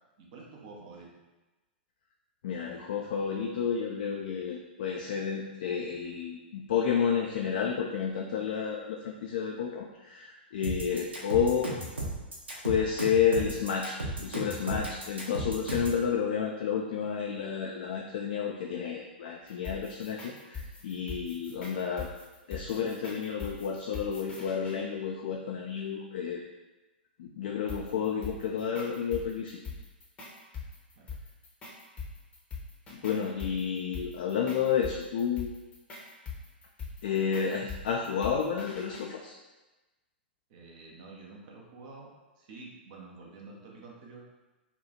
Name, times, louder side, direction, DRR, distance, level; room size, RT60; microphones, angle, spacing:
voice 1, 0.2-1.1 30.9-31.1 40.5-42.1 42.4-44.2, right 3 dB, 40° right, -2 dB, 0.7 m, -48 dB
voice 2, 2.4-11.7 12.6-22.1 22.5-26.4 27.2-29.6 32.9-35.5 37.0-39.4, left 7 dB, 50° left, 0 dB, 0.3 m, -31 dB
sound 1, 10.6-16.0, right 1 dB, 75° right, 0.8 m, -35 dB
sound 2, 19.5-24.8 27.7-39.1, left 5 dB, 20° left, 0.7 m, -42 dB
2.9 x 2.3 x 4.0 m, 1.1 s
figure-of-eight pair, 105°, 6 cm